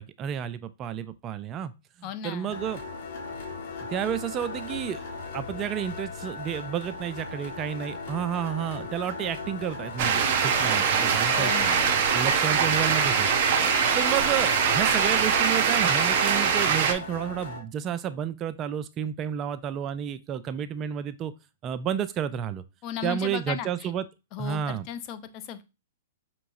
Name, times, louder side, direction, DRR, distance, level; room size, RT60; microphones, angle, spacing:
voice 1, 0.0-1.7 2.0-2.8 3.9-5.0 5.3-11.7 12.1-13.3 13.9-21.3 21.6-22.6 23.0-24.1 24.4-24.9, right 9 dB, 30° right, 12 dB, 0.3 m, -31 dB
voice 2, 2.0-2.6 11.2-12.0 22.8-23.9 24.3-25.6, left 9 dB, 40° left, 10 dB, 0.5 m, -36 dB
sound 1, 2.5-17.6, left 4 dB, 55° left, 1.4 m, -38 dB
sound 2, 10.0-16.9, right 6 dB, 50° right, 0.7 m, -23 dB
5.5 x 3.0 x 2.5 m, 0.27 s
hypercardioid pair, 125°, 0 cm